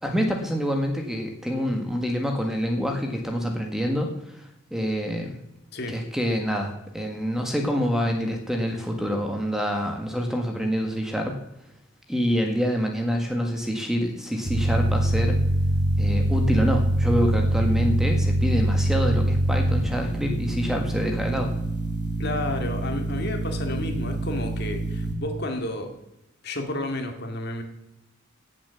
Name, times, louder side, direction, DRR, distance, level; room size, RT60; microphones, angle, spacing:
voice 1, 0.0-4.4 4.7-5.4 5.9-11.4 12.1-15.4 16.0-21.6, equal, ahead, 3 dB, 1.7 m, -26 dB
sound 1, 14.5-25.1, right 1 dB, 35° right, 2.1 m, -24 dB
voice 2, 22.2-25.9 26.4-27.6, left 1 dB, 50° left, 5 dB, 2.2 m, -31 dB
17.0 x 7.4 x 7.0 m, 0.86 s
head